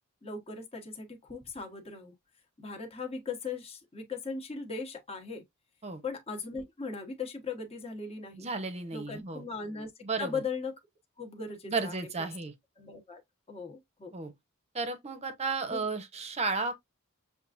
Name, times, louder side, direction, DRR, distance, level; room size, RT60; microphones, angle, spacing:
voice 1, 0.2-2.1 2.6-5.4 6.0-8.5 8.9-10.7 11.2-12.3 12.8-13.2 13.5-14.1 15.7-15.8, left 4 dB, 25° left, 1.1 m, -38 dB
voice 2, 8.3-9.4 10.0-10.4 11.7-12.5 14.1-14.3 14.7-16.8, right 4 dB, 30° right, 0.8 m, -33 dB
6.9 x 2.5 x 2.5 m
head